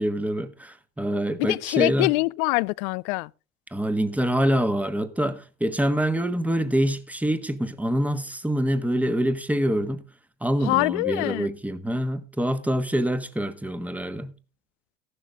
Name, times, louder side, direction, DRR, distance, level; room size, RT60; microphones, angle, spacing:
voice 1, 0.0-2.1 3.7-10.0 10.4-14.3, equal, 5° right, 1.3 m, -25 dB
voice 2, 1.4-3.3 10.6-11.5, left 25 dB, 55° left, 0.5 m, -24 dB
14.0 x 11.5 x 3.6 m
hypercardioid pair, 75°, 40 cm